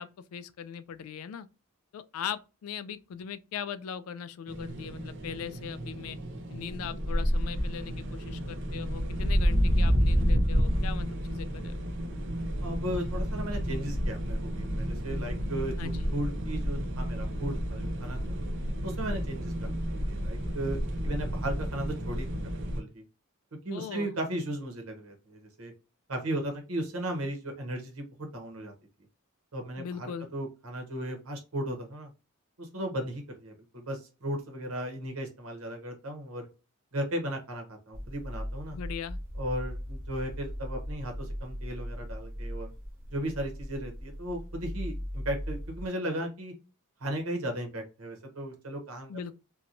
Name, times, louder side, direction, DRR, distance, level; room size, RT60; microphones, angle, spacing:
voice 1, 0.0-1.5 1.9-6.2 6.5-11.7 15.8-16.1 23.7-24.2 29.8-30.3 38.7-39.2 49.1-49.3, left 8 dB, 85° left, 0.3 m, -39 dB
sound 1, 4.5-22.8, equal, 60° right, 0.5 m, -30 dB
voice 2, 12.6-18.3 18.8-19.5 19.9-23.0 23.6-25.7 26.1-28.7 29.5-32.1 32.6-36.5 36.9-38.8 39.3-42.7 43.1-46.5 47.0-49.1, right 1 dB, 80° right, 0.9 m, -36 dB
sound 2, 37.9-45.9, equal, 40° right, 0.9 m, -38 dB
2.9 x 2.2 x 2.5 m
head